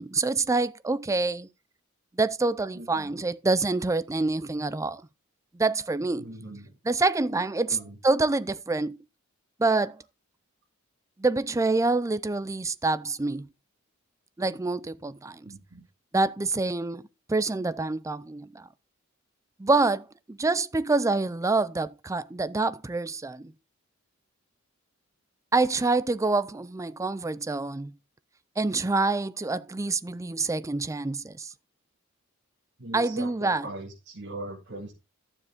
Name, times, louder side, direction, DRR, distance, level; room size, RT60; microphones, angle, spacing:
voice 1, 0.0-1.5 2.2-5.0 5.5-6.3 6.8-7.8 8.0-9.0 9.6-10.0 11.2-13.5 14.4-15.5 16.1-18.6 19.6-23.5 25.5-27.9 28.6-31.5 32.9-33.7, right 3 dB, 15° right, 0.4 m, -26 dB
voice 2, 2.7-3.3 6.2-6.8 7.7-8.0 15.4-15.8 32.8-34.9, right 1 dB, 60° right, 2.3 m, -40 dB
12.0 x 7.2 x 3.7 m
head